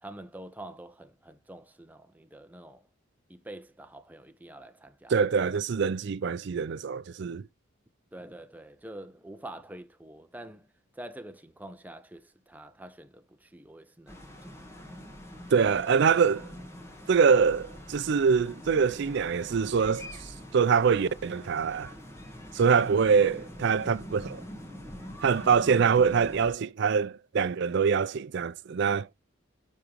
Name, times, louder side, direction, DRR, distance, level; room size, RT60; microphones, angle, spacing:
voice 1, 0.0-2.8 3.3-5.2 8.1-10.7 10.9-14.5, right 1 dB, 10° right, 0.6 m, -46 dB
voice 2, 5.1-7.5 15.5-16.5 17.1-20.2 20.5-21.9 22.5-24.4 25.2-29.1, right 6 dB, 60° right, 0.4 m, -24 dB
sound 1, 14.1-26.5, equal, 15° left, 1.5 m, -45 dB
9.8 x 3.6 x 3.0 m
head